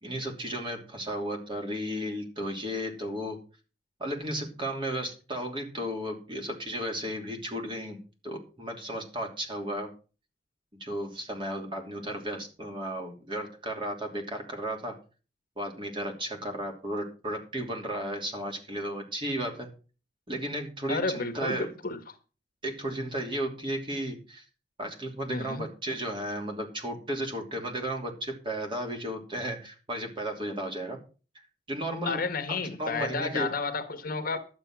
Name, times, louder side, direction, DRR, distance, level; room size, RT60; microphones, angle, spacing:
voice 1, 0.0-3.4 4.0-9.9 10.7-15.0 15.6-19.7 20.3-21.7 22.6-24.4 24.8-31.0 31.7-33.5, right 1 dB, 30° right, 2.9 m, -34 dB
voice 2, 20.9-22.0 25.3-25.6 32.0-34.5, left 4 dB, 50° left, 1.4 m, -31 dB
11.5 x 8.1 x 6.0 m
head